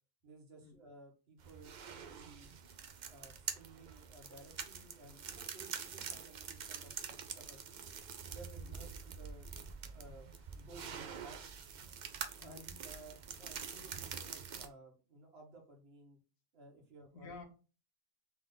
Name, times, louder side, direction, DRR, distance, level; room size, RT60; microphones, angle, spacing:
voice 1, 0.2-2.5 3.1-7.8 8.3-9.5 9.9-11.4 12.4-16.2 16.5-17.3, right 2 dB, 50° right, 1.4 m, -57 dB
sound 1, 1.4-14.7, right 6 dB, 70° right, 0.4 m, -46 dB
voice 2, 12.4-12.8 17.1-17.4, left 4 dB, 80° left, 1.3 m, -51 dB
3.6 x 3.3 x 3.7 m
omnidirectional pair, 1.4 m